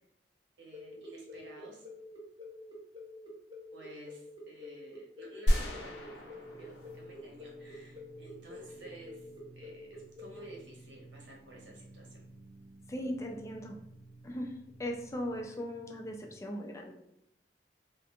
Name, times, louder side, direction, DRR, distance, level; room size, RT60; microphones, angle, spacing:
voice 1, 0.6-1.9 3.7-12.3, right 1 dB, 85° right, -2 dB, 0.8 m, -52 dB
sound 1, 0.7-10.5, left 3 dB, 25° right, 0.6 m, -48 dB
sound 2, 5.5-7.7, equal, 85° left, 0.6 m, -32 dB
sound 3, 6.4-16.3, right 1 dB, 35° left, 0.7 m, -55 dB
voice 2, 12.9-13.8 14.2-14.5 14.8-16.9, equal, 15° left, 2 dB, 0.3 m, -38 dB
2.3 x 2.1 x 2.8 m, 0.79 s
head